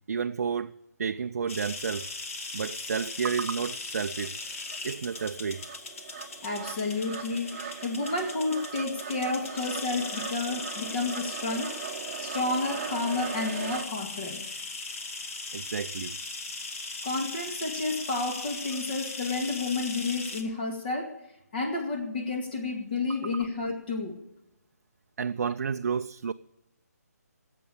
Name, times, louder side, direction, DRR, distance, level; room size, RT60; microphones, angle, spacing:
voice 1, 0.1-0.7 1.0-2.1 2.5-4.4 4.8-5.6 15.5-16.2 25.2-26.3, right 6 dB, 60° right, 0.5 m, -31 dB
sound 1, 1.5-20.4, left 3 dB, 55° left, 2.2 m, -39 dB
sound 2, 3.7-3.8 4.2-13.8, right 8 dB, 25° right, 1.0 m, -40 dB
voice 2, 6.4-7.6 7.8-11.7 12.2-14.4 17.0-21.2 21.5-24.2, left 3 dB, 35° left, 2.2 m, -31 dB
15.5 x 8.4 x 8.6 m
hypercardioid pair, 155°, 9 cm